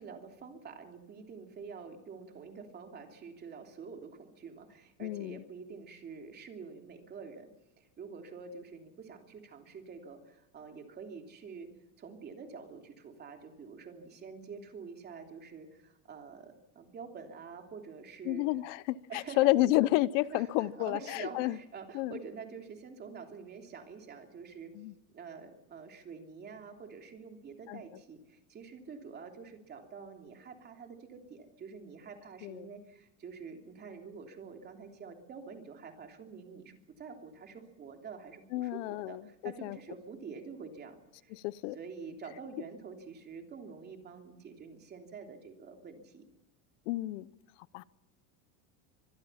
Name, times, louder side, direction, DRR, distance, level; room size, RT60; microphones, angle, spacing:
voice 1, 0.0-7.5 7.8-11.7 12.0-18.5 19.1-19.5 20.3-24.7 25.1-41.4 41.7-46.2, right 5 dB, 25° right, 4 dB, 3.1 m, -47 dB
voice 2, 5.0-5.4 18.3-21.6 21.9-22.1 24.8-24.9 27.7-27.8 32.4-32.7 38.5-39.2 39.6-39.8 41.3-41.8 46.9-47.3 47.7-47.8, left 17 dB, 65° left, 18 dB, 0.8 m, -30 dB
25.5 x 21.5 x 5.7 m, 0.94 s
cardioid pair, 160°, 40 cm